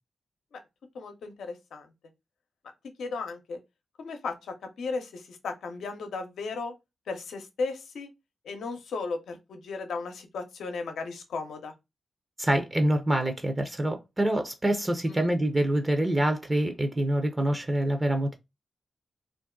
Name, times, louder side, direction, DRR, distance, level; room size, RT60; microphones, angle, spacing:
voice 1, 0.9-1.9 3.0-3.6 4.0-6.7 7.1-8.1 8.4-11.7 15.1-15.3, left 4 dB, 80° left, 0.7 m, -35 dB
voice 2, 12.4-18.4, right 1 dB, 20° right, 0.7 m, -26 dB
2.6 x 2.2 x 3.6 m
supercardioid pair, 50°, 0 cm